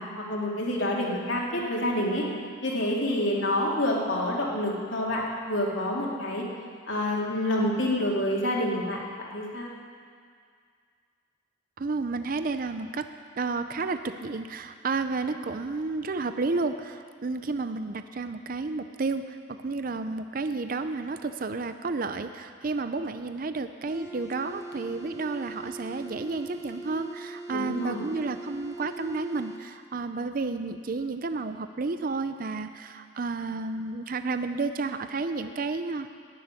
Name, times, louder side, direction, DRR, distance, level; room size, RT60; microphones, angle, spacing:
voice 1, 0.0-2.2 2.6-6.4 6.9-9.7 27.5-28.0, left 1 dB, 70° left, -3 dB, 2.6 m, -28 dB
voice 2, 11.8-13.0 13.4-36.1, right 3 dB, 45° right, 9 dB, 0.5 m, -31 dB
sound 1, 23.9-29.6, right 2 dB, 15° right, 1.6 m, -41 dB
11.0 x 9.6 x 9.6 m, 2.1 s
head